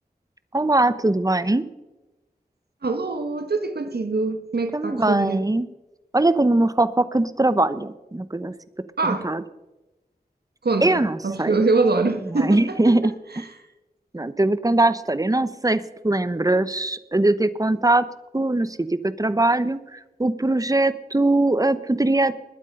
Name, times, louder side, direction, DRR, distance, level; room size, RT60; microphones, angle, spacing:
voice 1, 0.5-1.7 4.7-5.7 6.1-8.5 9.0-9.4 10.8-11.6 12.3-13.1 14.1-18.1 18.3-22.3, right 2 dB, 20° right, 0.9 m, -21 dB
voice 2, 2.8-5.4 9.0-9.3 10.6-13.0, right 3 dB, 75° right, 1.2 m, -24 dB
20.5 x 8.3 x 5.4 m
wide cardioid pair, 50°, 17 cm